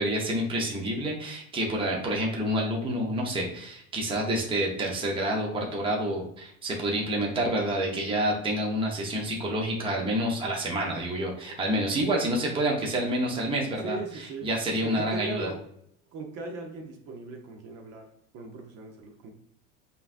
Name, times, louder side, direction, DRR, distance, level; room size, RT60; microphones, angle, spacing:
voice 1, 0.0-14.0 14.4-15.5, right 1 dB, 15° right, -1 dB, 0.8 m, -28 dB
voice 2, 13.8-14.5 14.8-15.6 16.1-19.3, right 4 dB, 50° right, 2 dB, 0.8 m, -38 dB
5.5 x 2.8 x 2.5 m, 0.70 s
supercardioid pair, 135°, 35 cm